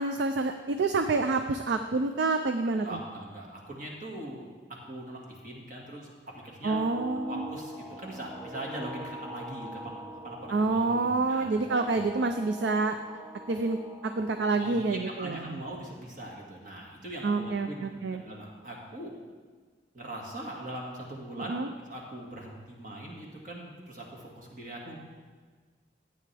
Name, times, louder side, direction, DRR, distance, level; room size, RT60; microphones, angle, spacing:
voice 1, 0.0-3.0 6.6-7.5 10.5-13.0 13.5-13.8 14.0-15.6 17.2-18.2 21.4-21.7, right 3 dB, 75° right, 7 dB, 0.4 m, -28 dB
voice 2, 2.8-4.4 4.9-12.0 14.5-19.1 19.9-21.6 21.9-25.0, right 1 dB, 45° right, -2 dB, 1.9 m, -41 dB
sound 1, 6.7-14.8, equal, 10° right, 0.5 m, -43 dB
13.0 x 8.6 x 3.4 m, 1.5 s
head